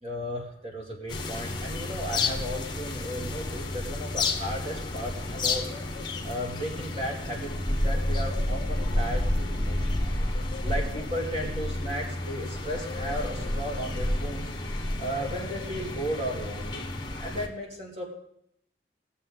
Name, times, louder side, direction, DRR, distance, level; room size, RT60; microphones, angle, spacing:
voice 1, 0.0-5.6 6.2-10.2 10.6-14.5 15.0-16.9 17.2-18.0, equal, 35° right, 0 dB, 2.4 m, -35 dB
sound 1, 1.1-17.5, left 2 dB, 25° left, 1.2 m, -30 dB
19.0 x 7.0 x 3.8 m, 0.74 s
head